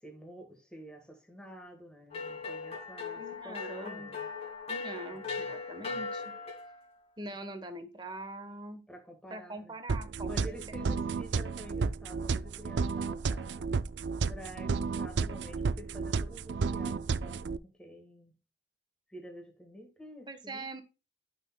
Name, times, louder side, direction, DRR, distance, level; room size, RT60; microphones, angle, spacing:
voice 1, 0.0-4.3 5.1-5.5 5.8-6.0 8.9-9.8 10.2-13.7 14.3-18.4 19.1-20.7, equal, 5° left, 1.8 m, -49 dB
sound 1, 2.1-6.8, left 4 dB, 35° left, 2.1 m, -39 dB
voice 2, 3.2-4.1 4.7-6.2 7.2-8.8 9.3-10.6 20.3-20.8, right 2 dB, 25° right, 1.3 m, -43 dB
sound 2, 9.9-17.6, right 4 dB, 90° right, 0.4 m, -32 dB
12.0 x 6.1 x 2.3 m
head